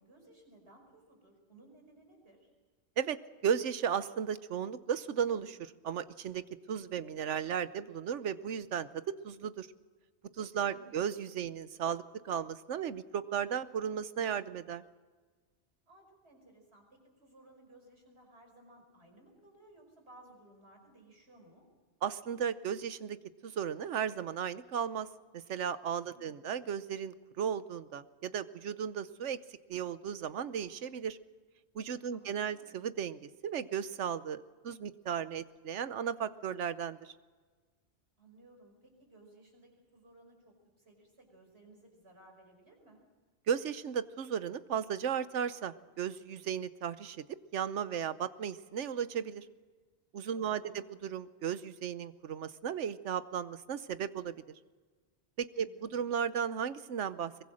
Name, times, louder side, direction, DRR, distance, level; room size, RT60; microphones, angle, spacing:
voice 1, 0.0-2.5 10.7-11.1 15.9-21.7 26.1-26.6 32.1-32.8 38.2-43.0 50.3-50.8 55.6-56.0, right 1 dB, 65° right, 3 dB, 5.6 m, -59 dB
voice 2, 3.4-6.4 6.7-9.7 10.4-14.8 22.0-23.2 23.4-25.1 25.3-29.4 29.7-31.2 31.7-37.1 43.5-47.2 47.5-49.5 50.1-54.4 55.4-57.3, right 8 dB, 90° right, 14 dB, 1.2 m, -35 dB
23.0 x 22.0 x 6.4 m, 1.4 s
omnidirectional pair, 1.2 m